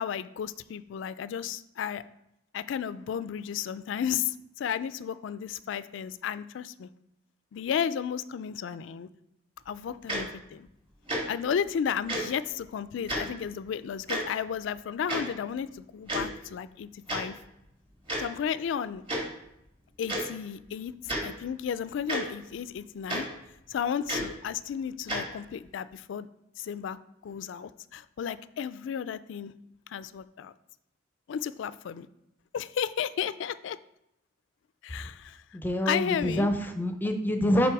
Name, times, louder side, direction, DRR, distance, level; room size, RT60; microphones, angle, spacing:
voice 1, 0.0-2.0 2.5-6.9 7.5-9.1 9.7-10.7 11.3-17.3 18.2-19.0 20.0-23.3 23.7-26.3 26.6-27.0 27.2-29.5 29.9-30.5 31.3-32.1 32.5-33.8 34.8-35.4 35.9-36.5, left 8 dB, 70° left, 16 dB, 0.3 m, -33 dB
Tick-tock, 10.1-10.2 11.1-11.2 12.1-12.2 13.1-13.2 14.1-14.2 15.1-15.2 16.1-16.3 17.1-17.2 18.1-18.2 19.1-19.2 20.1-20.2 21.0-21.2 22.1-22.2 23.1-23.2 24.1-24.3 25.1-25.2, right 1 dB, 25° right, 1.5 m, -30 dB
voice 2, 35.5-37.7, equal, 10° left, 6 dB, 0.5 m, -26 dB
6.0 x 4.1 x 4.7 m, 0.82 s
head